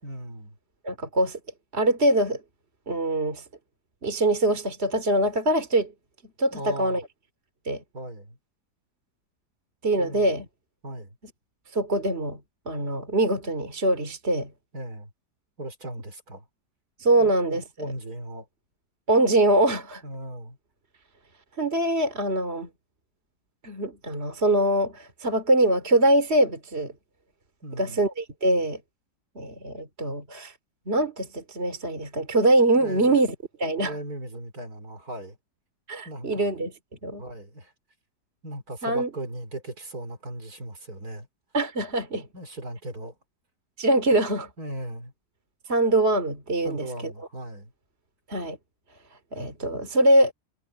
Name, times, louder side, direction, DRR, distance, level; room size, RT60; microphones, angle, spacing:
voice 1, 0.0-0.6 6.5-7.0 7.9-8.4 10.0-10.3 10.8-11.2 14.7-15.1 15.6-16.4 17.2-18.5 20.0-20.6 27.6-28.1 32.8-33.2 33.8-35.4 36.0-36.5 37.2-37.7 38.4-41.3 42.3-43.2 44.6-45.1 46.6-47.7, right 1 dB, 60° right, 4.9 m, -38 dB
voice 2, 0.8-1.4 1.7-2.4 2.9-3.4 4.0-5.9 6.4-7.0 7.7-7.8 9.8-10.4 11.7-12.4 12.7-14.5 17.0-17.6 19.1-20.0 21.6-22.7 23.6-26.9 27.8-28.8 29.3-30.5 30.9-33.9 35.9-36.7 37.0-37.2 38.8-39.1 41.5-42.2 43.8-44.5 45.7-47.1 48.3-48.6 49.3-50.3, right 1 dB, 40° right, 3.2 m, -23 dB
omnidirectional pair, 1.8 m